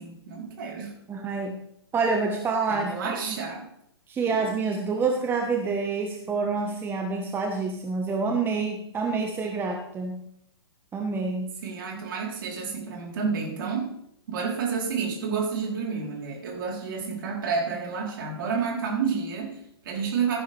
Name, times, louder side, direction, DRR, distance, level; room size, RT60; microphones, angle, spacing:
voice 1, 0.0-1.0 2.7-3.7 4.3-4.4 11.6-13.9 14.3-20.4, right 5 dB, 55° right, 0 dB, 3.9 m, -30 dB
voice 2, 1.1-1.5 1.9-3.4 4.1-10.2 10.9-11.6, right 4 dB, 15° right, 2 dB, 1.3 m, -27 dB
15.5 x 10.0 x 3.5 m, 0.75 s
figure-of-eight pair, 115°, 14 cm